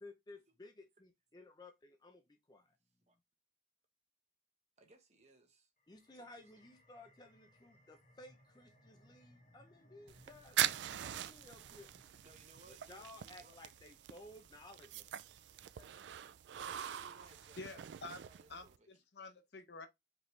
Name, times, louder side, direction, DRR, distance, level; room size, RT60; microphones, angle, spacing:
voice 1, 0.0-2.8 5.9-10.8 11.0-11.9 12.7-15.1 15.8-15.9, left 2 dB, 25° left, 0.5 m, -57 dB
voice 2, 4.8-5.7 6.1-6.3 6.5-6.6 12.2-13.6 16.5-17.9 18.2-18.9, right 2 dB, 40° right, 1.2 m, -63 dB
sound 1, 5.8-16.9, equal, 45° left, 1.0 m, -68 dB
sound 2, 10.1-18.8, right 11 dB, 80° right, 0.3 m, -42 dB
voice 3, 17.6-18.2 18.5-19.9, left 3 dB, 75° left, 0.9 m, -49 dB
5.1 x 3.3 x 3.1 m
head